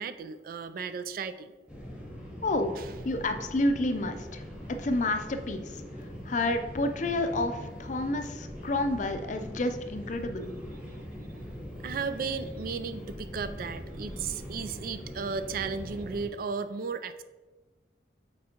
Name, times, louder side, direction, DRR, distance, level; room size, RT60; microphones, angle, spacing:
voice 1, 0.0-1.5 2.8-2.9 10.9-11.6 11.8-17.2, right 5 dB, 50° right, 11 dB, 0.3 m, -35 dB
sound 1, 1.7-16.3, equal, 5° right, 1.1 m, -42 dB
voice 2, 2.4-2.8 3.0-4.4 4.7-5.8 6.2-10.5, left 2 dB, 45° left, 7 dB, 0.5 m, -29 dB
7.5 x 4.6 x 2.9 m, 1.2 s
head